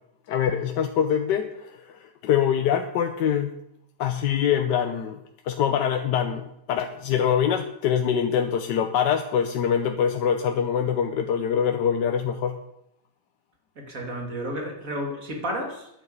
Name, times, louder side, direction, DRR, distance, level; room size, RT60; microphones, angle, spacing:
voice 1, 0.3-3.5 4.0-12.6, left 8 dB, 90° left, 6 dB, 1.5 m, -24 dB
voice 2, 13.8-15.9, equal, 50° right, 1 dB, 3.2 m, -32 dB
11.0 x 10.5 x 8.1 m, 0.81 s
omnidirectional pair, 1.8 m